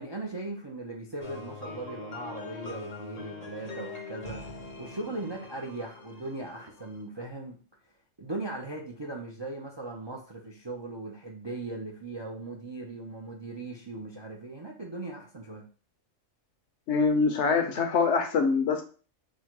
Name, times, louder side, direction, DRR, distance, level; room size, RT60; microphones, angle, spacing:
voice 1, 0.0-4.4 4.8-7.6 8.2-15.6, right 2 dB, 40° right, 0 dB, 0.4 m, -38 dB
sound 1, 1.2-7.0, left 4 dB, 40° left, 0.6 m, -43 dB
voice 2, 16.9-18.8, left 5 dB, 65° left, 6 dB, 0.9 m, -24 dB
4.3 x 2.1 x 4.5 m, 0.38 s
omnidirectional pair, 1.3 m